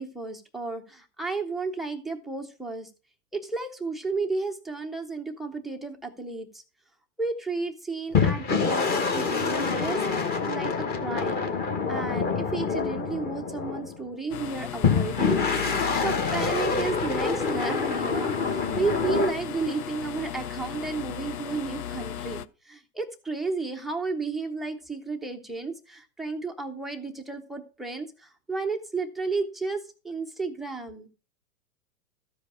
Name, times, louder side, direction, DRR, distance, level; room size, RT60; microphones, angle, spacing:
voice 1, 0.0-2.9 3.3-6.6 7.2-11.5 11.9-15.5 15.7-31.1, right 4 dB, ahead, 7 dB, 0.4 m, -33 dB
sound 1, 8.1-14.0 14.8-19.3, left 5 dB, 20° left, 1.1 m, -26 dB
sound 2, 14.3-22.5, left 10 dB, 90° left, 0.7 m, -36 dB
13.0 x 5.0 x 4.8 m, 0.33 s
hypercardioid pair, 125°, 43 cm